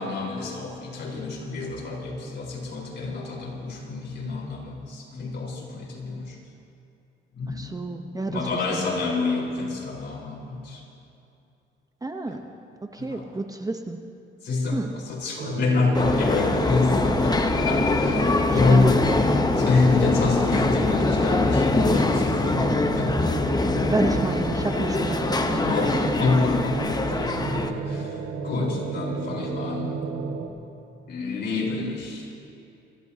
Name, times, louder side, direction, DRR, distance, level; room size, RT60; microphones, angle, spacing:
voice 1, 0.0-6.4 7.3-7.7 8.3-10.8 12.3-12.4 13.0-13.2 14.4-23.4 25.6-30.0 31.1-32.5, left 3 dB, 60° left, -3 dB, 4.4 m, -27 dB
voice 2, 7.5-8.4 8.7-8.8 12.0-12.4 12.8-14.0 14.7-14.9 18.7-19.2 23.9-26.1, right 2 dB, 20° right, 5 dB, 0.9 m, -29 dB
sound 1, 15.4-30.5, right 5 dB, 80° right, 1.4 m, -32 dB
sound 2, 15.9-27.7, left 3 dB, 20° left, 1.0 m, -23 dB
26.0 x 15.5 x 2.8 m, 2.7 s
cardioid pair, 90°, 20 cm